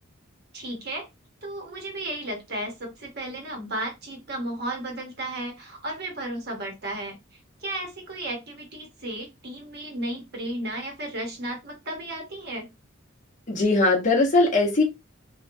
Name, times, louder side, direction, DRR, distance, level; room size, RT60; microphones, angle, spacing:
voice 1, 0.5-1.1 1.4-7.2 7.6-12.7, right 1 dB, 50° right, 2 dB, 0.9 m, -34 dB
voice 2, 13.5-14.8, left 2 dB, 35° left, -1 dB, 0.8 m, -20 dB
2.9 x 2.3 x 2.6 m, 0.23 s
head